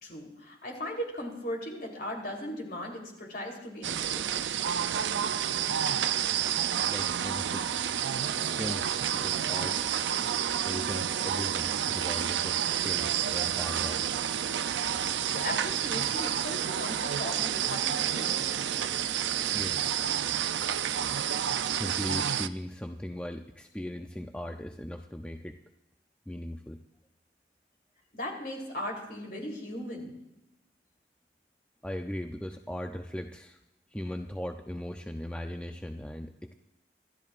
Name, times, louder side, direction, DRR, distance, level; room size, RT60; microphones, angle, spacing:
voice 1, 0.0-4.6 15.3-18.5 28.1-30.2, left 1 dB, 55° left, 0 dB, 3.6 m, -38 dB
sound 1, 3.8-22.5, right 9 dB, 90° right, 0.5 m, -29 dB
voice 2, 6.9-7.8 8.3-9.8 10.6-14.1 19.5-20.1 21.7-25.6 26.3-26.8 31.8-33.6 33.9-36.5, left 1 dB, 5° left, 4 dB, 0.5 m, -39 dB
27.0 x 12.5 x 2.5 m, 0.90 s
head